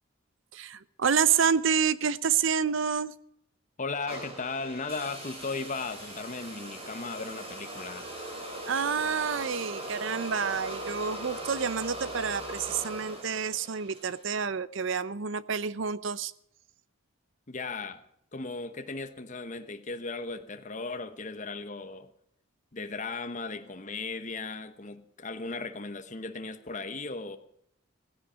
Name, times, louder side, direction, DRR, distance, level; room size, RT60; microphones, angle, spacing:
voice 1, 0.5-3.1 8.6-16.3, right 6 dB, 65° right, 0.6 m, -28 dB
voice 2, 3.8-8.1 17.5-18.0 18.3-22.1 22.7-27.4, left 3 dB, 35° left, 1.1 m, -36 dB
sound 1, 4.1-14.3, right 1 dB, 30° right, 4.3 m, -40 dB
16.5 x 16.0 x 5.1 m
head